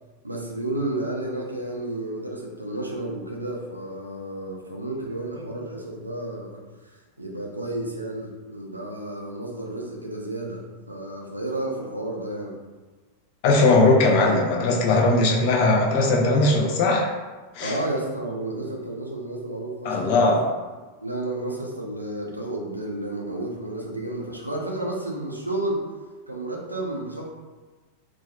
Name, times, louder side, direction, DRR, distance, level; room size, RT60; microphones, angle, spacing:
voice 1, 0.2-6.6 7.2-12.5 17.6-20.4 21.0-25.8 26.3-27.3, right 1 dB, 85° right, -1 dB, 0.4 m, -31 dB
voice 2, 13.4-17.1 17.5-17.8 19.8-20.4, left 2 dB, 45° left, 0 dB, 0.5 m, -19 dB
2.7 x 2.2 x 2.2 m, 1.3 s
figure-of-eight pair, 90°, 0 cm